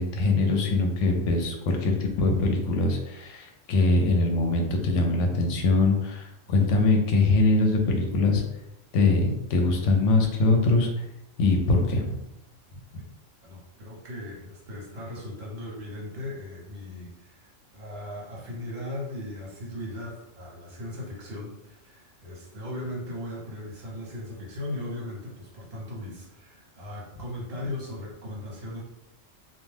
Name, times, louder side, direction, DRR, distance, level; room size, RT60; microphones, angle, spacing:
voice 1, 0.0-8.4 8.9-10.9 11.4-12.2, left 3 dB, 75° left, 3 dB, 0.9 m, -23 dB
voice 2, 13.4-28.8, left 1 dB, 55° right, -4 dB, 1.0 m, -38 dB
2.4 x 2.2 x 3.2 m, 0.86 s
omnidirectional pair, 1.3 m